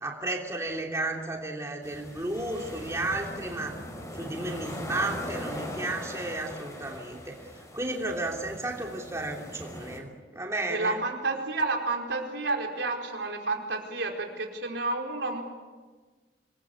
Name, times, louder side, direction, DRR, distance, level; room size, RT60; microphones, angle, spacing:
voice 1, 0.0-3.8 4.1-7.3 7.7-11.0, right 2 dB, 15° right, 0 dB, 3.0 m, -33 dB
sound 1, 1.8-10.0, left 1 dB, 20° left, 5.0 m, -40 dB
voice 2, 10.7-15.4, right 3 dB, 85° right, 1 dB, 4.8 m, -30 dB
26.5 x 21.5 x 8.5 m, 1.3 s
head